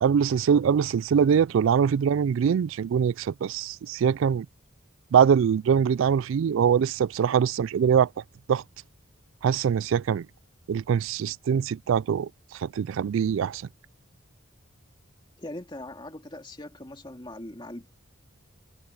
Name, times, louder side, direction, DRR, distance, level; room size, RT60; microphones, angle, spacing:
voice 1, 0.0-4.5 5.1-8.1 8.5-8.6 9.4-10.3 10.7-12.3 12.6-13.6, right 7 dB, 70° right, 0.3 m, -23 dB
voice 2, 15.4-17.9, left 1 dB, 20° left, 2.4 m, -40 dB
head